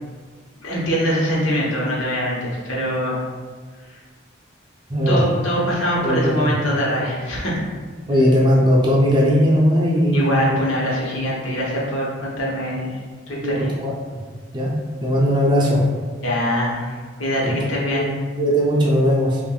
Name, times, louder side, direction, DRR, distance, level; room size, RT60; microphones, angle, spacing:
voice 1, 0.6-3.2 3.9-4.0 5.1-7.6 10.1-13.0 13.3-13.7 16.2-18.1, equal, 85° left, -4 dB, 1.0 m, -23 dB
voice 2, 4.9-5.2 6.0-6.5 8.1-10.4 13.4-14.2 14.5-14.7 15.0-15.8 17.4-19.4, equal, 25° right, -4 dB, 0.5 m, -18 dB
5.5 x 2.5 x 2.4 m, 1.5 s
head